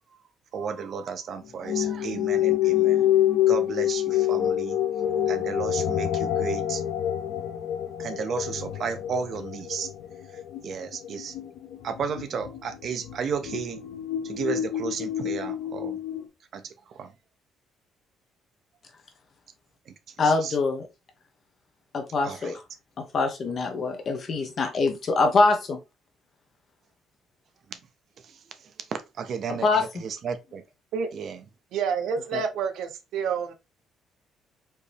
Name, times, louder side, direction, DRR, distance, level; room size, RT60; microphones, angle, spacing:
voice 1, 0.5-3.0 3.5-4.8 5.3-6.8 8.0-9.9 10.6-11.3 11.8-13.8 14.2-16.0 16.5-17.1 19.9-20.6 22.2-22.5 28.2-28.4 28.9-30.6 31.1-31.4, right 6 dB, 45° right, 0.6 m, -33 dB
sound 1, 1.7-16.3, left 11 dB, 60° left, 0.6 m, -27 dB
voice 2, 20.2-20.8 21.9-22.6 23.0-25.8 29.5-29.9 32.3-32.4, left 3 dB, 35° left, 0.9 m, -24 dB
voice 3, 31.7-33.5, right 6 dB, 70° right, 0.8 m, -28 dB
4.4 x 2.9 x 3.3 m
cardioid pair, 165°, 0 cm